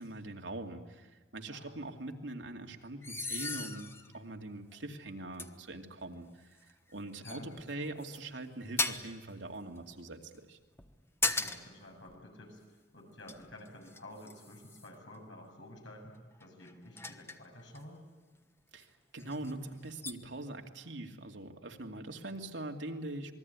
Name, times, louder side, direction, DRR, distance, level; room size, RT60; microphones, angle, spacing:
voice 1, 0.0-6.5 6.9-10.6 18.7-23.3, right 2 dB, 80° right, 3 dB, 2.6 m, -42 dB
voice 2, 1.5-1.8 7.2-7.5 7.9-8.0 11.3-16.1 16.4-18.0, left 1 dB, 90° left, 2 dB, 7.5 m, -51 dB
sound 1, 3.0-4.2 4.7-4.8 5.4-5.5 6.7-6.9 7.2-8.2 8.8-9.2 10.7-11.8 12.1-12.2 13.0-15.0 16.4-17.8 18.8-18.9 19.2-19.5 20.0-20.1, left 3 dB, 15° left, 1.2 m, -37 dB
27.5 x 21.0 x 9.6 m, 1.3 s
head